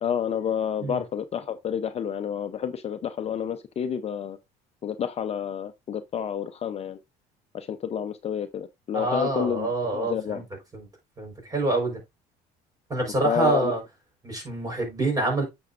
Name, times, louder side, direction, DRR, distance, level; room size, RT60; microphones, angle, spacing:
voice 1, 0.0-4.4 4.8-7.0 7.5-10.4 13.2-13.7, left 8 dB, 40° left, 0.7 m, -29 dB
voice 2, 8.9-10.4 10.7-10.9 11.2-12.0 12.9-13.8 14.2-15.4, right 2 dB, 20° right, 4.5 m, -26 dB
9.1 x 6.2 x 2.5 m
cardioid pair, 105°, 16 cm